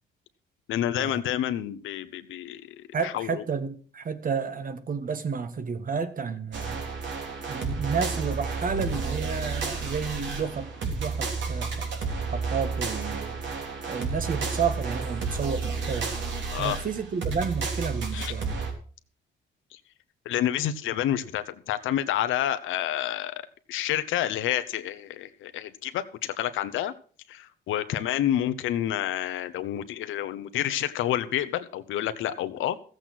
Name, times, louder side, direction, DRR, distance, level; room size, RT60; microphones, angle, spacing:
voice 1, 0.7-3.4 16.5-16.8 18.1-18.3 19.7-19.8 20.2-23.3 23.7-26.9 27.3-32.8, left 11 dB, 85° left, 1.1 m, -29 dB
voice 2, 2.9-6.8 7.5-11.9 12.3-13.4 13.9-16.1 16.6-18.6, right 5 dB, 45° right, 1.6 m, -31 dB
sound 1, 6.5-18.7, right 4 dB, 65° right, 3.5 m, -31 dB
14.5 x 8.0 x 6.0 m
cardioid pair, 90°, 20 cm